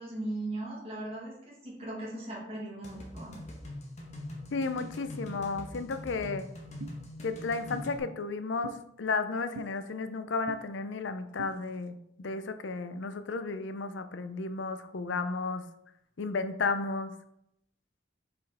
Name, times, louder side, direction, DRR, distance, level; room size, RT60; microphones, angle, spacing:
voice 1, 0.0-1.3 1.6-3.4, right 1 dB, 30° right, -6 dB, 1.7 m, -38 dB
sound 1, 2.8-8.0, left 1 dB, 35° left, 1.3 m, -43 dB
voice 2, 4.5-6.5 7.2-15.6 16.2-17.1, left 4 dB, 75° left, 10 dB, 0.5 m, -33 dB
sound 2, 6.8-7.0 7.7-7.9 8.6-8.8 9.6-9.7 10.5-10.6 11.4-11.5, right 5 dB, 85° right, 0.5 m, -42 dB
5.2 x 4.5 x 4.2 m, 0.78 s
head